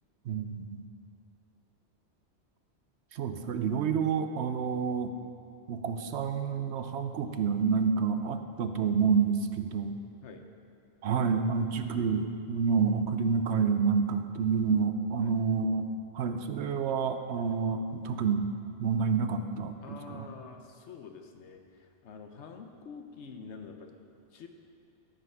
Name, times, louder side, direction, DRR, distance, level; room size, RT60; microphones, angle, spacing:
voice 1, 0.3-0.8 3.1-5.1 5.7-10.0 11.0-15.9 16.1-18.5 18.8-20.3, right 5 dB, 75° right, 8 dB, 0.9 m, -28 dB
voice 2, 19.8-23.9 24.3-24.5, left 5 dB, 80° left, 4 dB, 1.0 m, -47 dB
13.5 x 5.4 x 5.6 m, 2.5 s
omnidirectional pair, 1.2 m